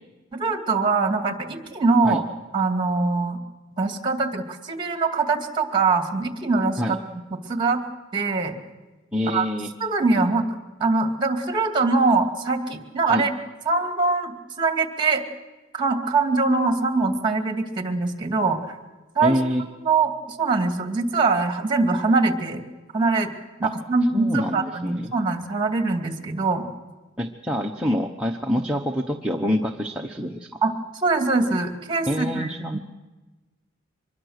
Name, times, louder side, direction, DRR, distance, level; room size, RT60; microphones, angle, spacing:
voice 1, 0.3-2.2 2.5-3.4 3.8-7.0 7.5-7.8 8.1-8.5 9.3-9.5 9.8-10.5 10.8-13.3 13.7-15.2 15.7-18.8 19.2-19.4 19.8-22.6 22.9-23.3 23.6-26.7 30.6-32.8, right 3 dB, 25° right, 5 dB, 2.3 m, -23 dB
voice 2, 9.1-9.7 13.1-13.2 19.2-19.6 23.6-23.7 24.1-25.1 27.2-30.5 32.1-32.8, equal, 5° right, -1 dB, 0.9 m, -26 dB
25.0 x 21.5 x 6.5 m, 1.2 s
head